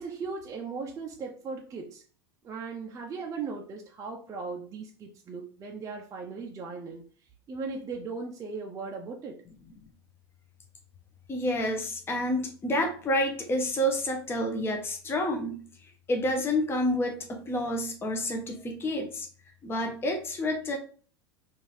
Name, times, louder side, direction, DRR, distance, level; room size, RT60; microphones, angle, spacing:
voice 1, 0.0-2.0 2.4-7.0 7.5-9.4, right 4 dB, 25° right, 0.5 m, -38 dB
voice 2, 11.3-15.6 16.1-19.3 19.6-20.8, left 1 dB, 15° left, 0.7 m, -29 dB
3.8 x 2.5 x 3.1 m
figure-of-eight pair, 85°, 14 cm